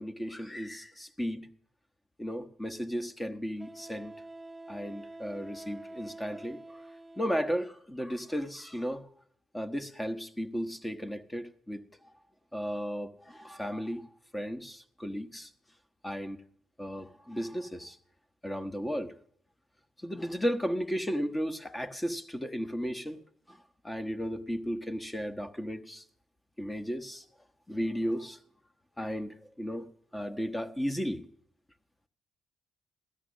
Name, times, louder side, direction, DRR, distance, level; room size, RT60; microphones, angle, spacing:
voice 1, 0.0-1.5 2.2-4.1 4.7-6.8 7.2-9.1 9.5-11.8 12.5-14.0 14.3-15.5 16.0-16.4 16.8-18.0 18.4-19.1 20.0-23.2 23.5-26.0 26.6-27.2 27.7-28.4 29.0-29.9 30.1-31.3, equal, 15° left, 1.1 m, -34 dB
Wind instrument woodwind instrument, 2.3-2.4 3.6-7.7, right 2 dB, 10° right, 1.5 m, -47 dB
16.5 x 13.0 x 6.4 m
cardioid pair, 85°, 0 cm